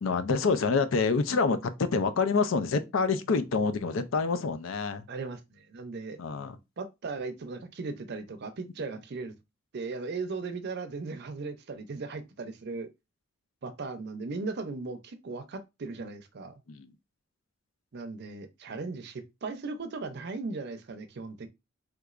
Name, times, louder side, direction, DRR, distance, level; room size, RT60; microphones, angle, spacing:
voice 1, 0.0-5.0 6.2-6.6 16.7-16.9, left 4 dB, 70° left, 0.5 m, -27 dB
voice 2, 5.1-6.2 6.8-9.3 9.7-12.9 13.6-16.6 17.9-21.5, right 3 dB, 55° right, 0.5 m, -37 dB
3.4 x 3.0 x 2.4 m
head